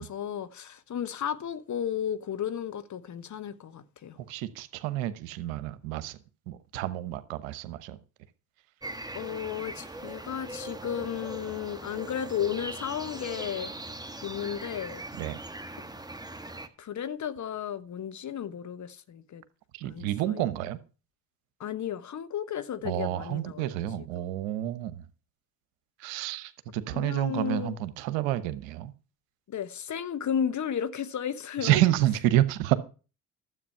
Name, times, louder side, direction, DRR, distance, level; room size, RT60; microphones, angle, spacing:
voice 1, 0.0-4.2 9.1-13.7 14.2-15.0 16.8-19.4 19.8-20.5 21.6-23.8 26.9-27.7 29.5-31.8, left 9 dB, 45° left, 1.1 m, -34 dB
voice 2, 4.3-6.2 6.5-8.0 15.2-15.4 19.7-20.8 22.8-25.0 26.0-28.9 31.6-32.7, right 14 dB, 80° right, 1.1 m, -29 dB
sound 1, 8.8-16.7, right 2 dB, 10° right, 1.4 m, -40 dB
12.5 x 7.9 x 5.6 m
hypercardioid pair, 55°, 41 cm